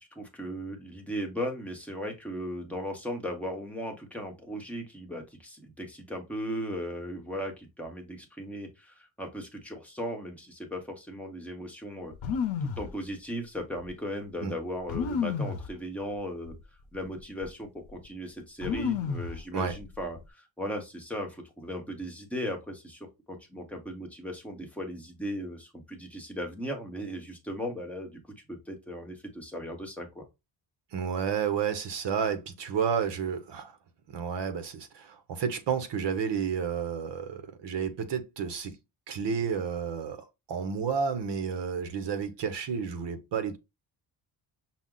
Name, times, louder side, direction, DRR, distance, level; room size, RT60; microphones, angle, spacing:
voice 1, 0.0-12.1 12.6-16.5 16.9-28.2 28.5-30.3, equal, 5° left, 0.8 m, -37 dB
sound 1, 12.1-12.9 13.8-13.9 14.9-15.7 16.5-16.6 16.9-17.4 18.6-19.4 19.7-20.2, left 6 dB, 75° left, 0.8 m, -31 dB
voice 2, 30.9-33.8 34.1-38.8 39.1-43.6, right 7 dB, 60° right, 0.9 m, -31 dB
5.9 x 2.0 x 3.7 m
wide cardioid pair, 170°, 47 cm